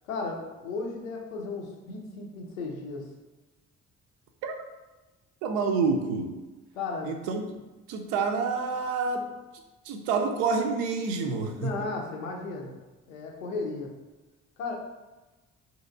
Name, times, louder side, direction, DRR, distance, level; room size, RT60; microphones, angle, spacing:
voice 1, 0.1-3.1 6.7-7.1 11.6-12.8 13.1-13.9 14.6-14.8, left 3 dB, 75° left, 1 dB, 0.5 m, -35 dB
voice 2, 5.4-6.4 7.0-7.6 7.9-9.3 9.8-11.9, right 4 dB, 60° right, 5 dB, 0.5 m, -28 dB
2.8 x 2.7 x 2.4 m, 1.1 s
figure-of-eight pair, 40°, 40 cm